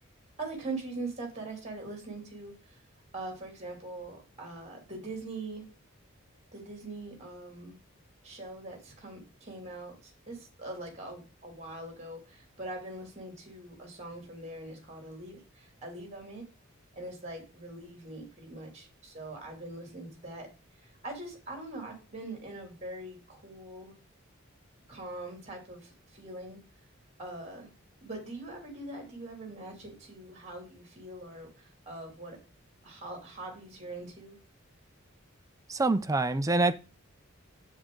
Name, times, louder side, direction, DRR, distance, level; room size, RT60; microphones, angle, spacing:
voice 1, 0.4-2.8 3.1-5.7 6.5-7.8 8.2-16.4 16.9-20.5 20.8-23.9 24.9-26.6 27.2-27.7 28.0-32.4 32.8-34.4, right 2 dB, 30° right, 2.6 m, -42 dB
voice 2, 35.7-36.7, right 2 dB, 15° right, 0.4 m, -25 dB
7.4 x 7.3 x 3.8 m
head